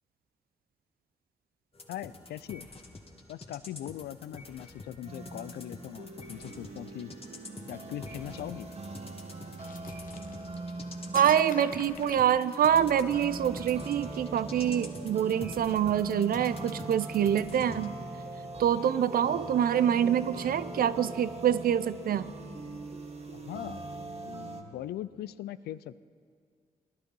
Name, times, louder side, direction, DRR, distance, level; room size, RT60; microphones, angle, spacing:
sound 1, 1.7-17.9, left 2 dB, 35° left, 1.9 m, -48 dB
voice 1, 1.9-2.7 3.3-7.1 7.7-8.7 23.3-23.8 24.2-26.0, left 12 dB, 75° left, 16 dB, 0.4 m, -40 dB
sound 2, 5.0-24.6, right 2 dB, 40° right, 1.6 m, -41 dB
sound 3, 9.6-10.7 11.1-13.0, left 6 dB, 55° left, 0.8 m, -44 dB
voice 2, 11.1-17.9 18.6-22.3, right 9 dB, 60° right, 16 dB, 0.6 m, -26 dB
18.5 x 11.5 x 5.4 m, 2.1 s
hypercardioid pair, 40°, 17 cm